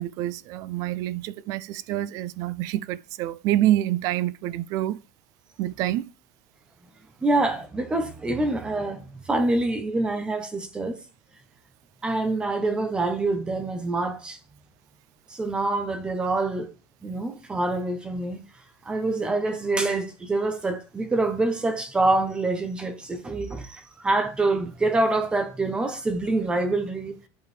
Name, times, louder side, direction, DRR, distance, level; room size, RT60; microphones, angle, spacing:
voice 1, 0.0-5.0 5.6-6.1, right 13 dB, 35° right, 0.4 m, -27 dB
voice 2, 7.2-11.0 12.0-14.4 15.3-16.7 17.0-18.4 18.8-27.2, right 2 dB, 10° right, 0.8 m, -26 dB
11.0 x 5.0 x 3.3 m
supercardioid pair, 175°, 10 cm